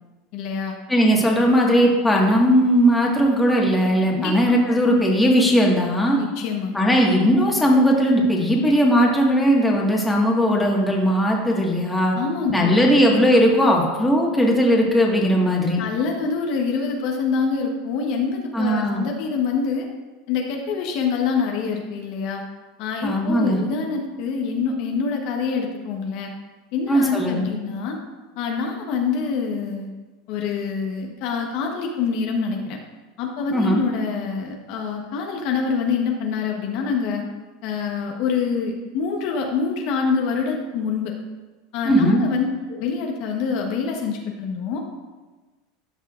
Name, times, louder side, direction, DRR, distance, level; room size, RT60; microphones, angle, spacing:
voice 1, 0.3-0.8 4.1-4.8 6.2-6.8 12.1-13.0 15.8-19.9 20.3-22.4 22.8-26.3 26.7-28.0 28.4-29.9 30.3-32.8 33.2-37.2 37.6-41.1 41.7-44.8, left 5 dB, 60° left, 1 dB, 1.0 m, -25 dB
voice 2, 0.9-6.2 6.7-12.1 12.5-15.8 18.5-19.0 23.0-23.6 26.9-27.4 33.5-33.8 41.8-42.2, equal, 5° left, -2 dB, 1.6 m, -18 dB
12.5 x 5.6 x 2.5 m, 1.3 s
supercardioid pair, 110°, 0 cm